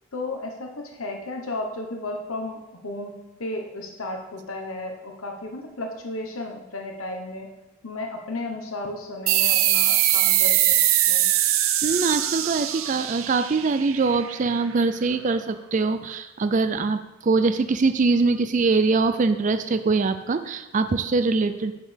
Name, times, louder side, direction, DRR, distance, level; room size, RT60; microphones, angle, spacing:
voice 1, 0.1-7.5 7.8-10.8 11.1-11.2, left 2 dB, 90° left, 3 dB, 1.2 m, -34 dB
sound 1, 9.3-14.4, right 12 dB, 85° right, 0.6 m, -22 dB
voice 2, 11.8-21.7, right 4 dB, 35° right, 10 dB, 0.4 m, -23 dB
11.0 x 8.5 x 3.4 m, 1.0 s
head